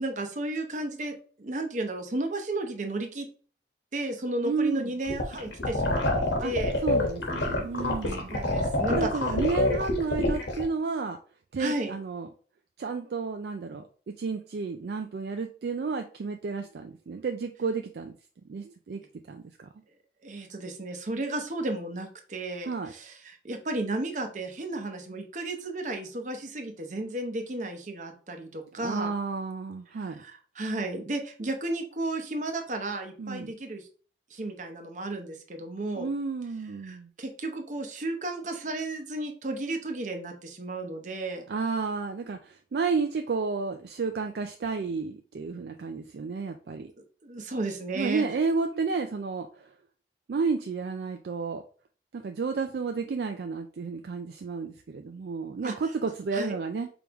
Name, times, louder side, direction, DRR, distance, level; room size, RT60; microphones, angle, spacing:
voice 1, 0.0-3.3 3.9-6.0 6.4-6.8 8.3-9.1 11.6-11.9 20.2-29.1 29.9-33.8 34.3-36.1 36.8-41.4 47.2-48.2 55.6-55.7 56.3-56.6, right 2 dB, 45° right, 4 dB, 0.8 m, -33 dB
voice 2, 4.4-4.9 6.4-6.5 6.8-8.3 8.9-11.2 11.5-12.3 12.8-13.9 14.2-18.2 18.5-19.0 19.3-19.7 22.7-22.9 28.8-30.2 33.2-33.5 36.0-37.1 41.5-46.9 47.9-49.7 50.3-51.6 52.1-56.9, right 4 dB, 60° right, 5 dB, 0.4 m, -31 dB
sound 1, 5.1-10.6, left 2 dB, 85° left, 1.2 m, -26 dB
4.8 x 3.5 x 2.9 m, 0.41 s
head